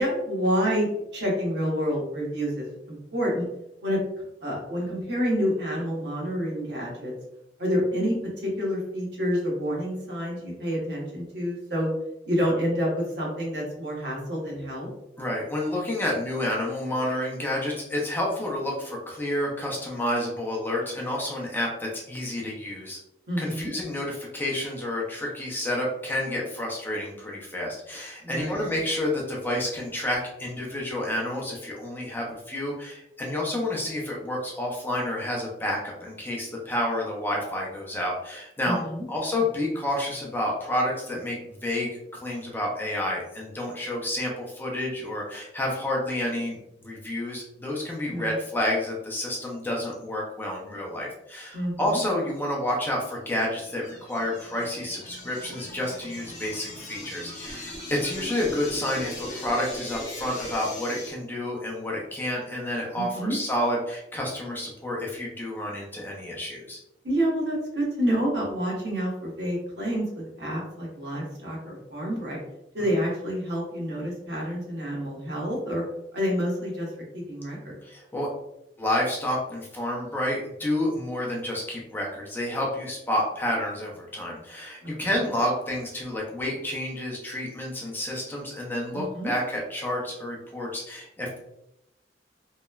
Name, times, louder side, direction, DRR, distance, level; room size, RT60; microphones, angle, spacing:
voice 1, 0.0-3.5 3.8-7.1 7.6-8.1 8.4-11.9 12.2-14.9 23.3-23.7 28.2-28.6 38.6-39.0 48.1-48.3 51.5-52.0 62.9-63.3 67.0-72.4 72.7-75.8 76.1-76.9 77.1-77.8 84.8-85.1 88.9-89.3, equal, 65° right, -3 dB, 1.0 m, -28 dB
voice 2, 15.2-23.0 23.4-38.8 39.1-66.8 77.8-78.3 78.8-91.4, left 1 dB, 10° left, -2 dB, 0.5 m, -29 dB
sound 1, 53.1-61.1, left 1 dB, 40° left, 1.0 m, -39 dB
2.9 x 2.1 x 2.2 m, 0.84 s
head